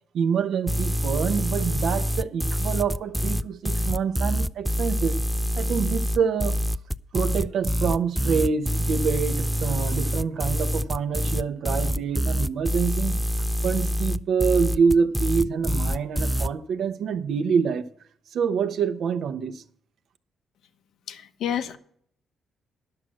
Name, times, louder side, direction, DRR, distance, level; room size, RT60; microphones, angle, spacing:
voice 1, 0.1-5.2 5.6-6.6 7.1-13.2 13.6-17.9 18.3-19.6, right 6 dB, 70° right, 0.9 m, -26 dB
sound 1, 0.7-16.5, equal, 5° right, 0.4 m, -26 dB
voice 2, 21.1-21.8, left 9 dB, 75° left, 0.9 m, -29 dB
11.0 x 6.4 x 7.5 m
cardioid pair, 90°, 0 cm